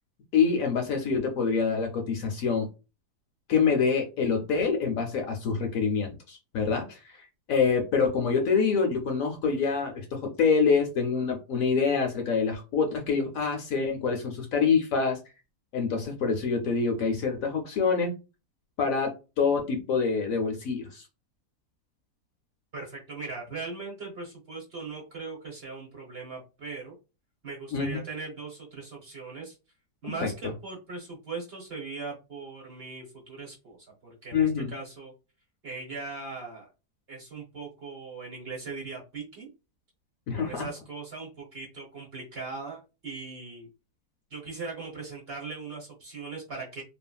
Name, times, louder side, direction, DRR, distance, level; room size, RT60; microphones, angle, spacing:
voice 1, 0.3-2.7 3.5-7.2 7.5-15.2 15.7-18.1 18.8-21.0 27.7-28.0 30.0-30.3 34.3-34.7 40.3-40.7, left 5 dB, 65° left, 3 dB, 0.9 m, -26 dB
voice 2, 22.7-26.9 27.4-29.6 30.0-35.1 35.6-36.7 37.1-39.5 40.3-43.7 44.3-46.8, right 4 dB, 45° right, -1 dB, 0.9 m, -39 dB
3.0 x 2.4 x 2.2 m, 0.30 s
omnidirectional pair, 1.7 m